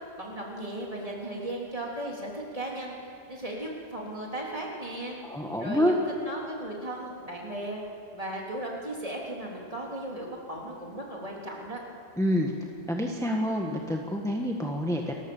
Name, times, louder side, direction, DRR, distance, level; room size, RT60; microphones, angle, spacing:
voice 1, 0.0-5.2 5.6-6.0 6.3-7.8 8.1-11.8, right 1 dB, 30° right, -3 dB, 3.7 m, -36 dB
voice 2, 5.2-6.0 12.2-12.5 12.9-15.2, equal, 5° left, 1 dB, 1.4 m, -27 dB
29.0 x 14.0 x 7.2 m, 2.6 s
omnidirectional pair, 1.1 m